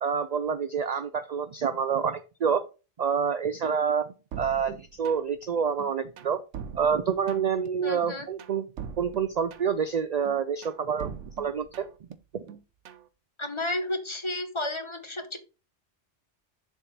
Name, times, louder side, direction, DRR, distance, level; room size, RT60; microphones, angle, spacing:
voice 1, 0.0-2.6 3.0-4.1 4.4-6.4 6.7-8.6 9.0-11.9 12.3-12.4, right 6 dB, 60° right, 11 dB, 0.4 m, -27 dB
sound 1, 4.3-5.4 5.8-7.7 8.0-9.9 10.2-12.1 12.5-13.1, right 7 dB, 80° right, 1.1 m, -42 dB
voice 2, 7.8-8.3 13.4-15.4, left 1 dB, 25° left, 7 dB, 1.0 m, -32 dB
6.9 x 3.5 x 5.9 m, 0.32 s
omnidirectional pair, 1.2 m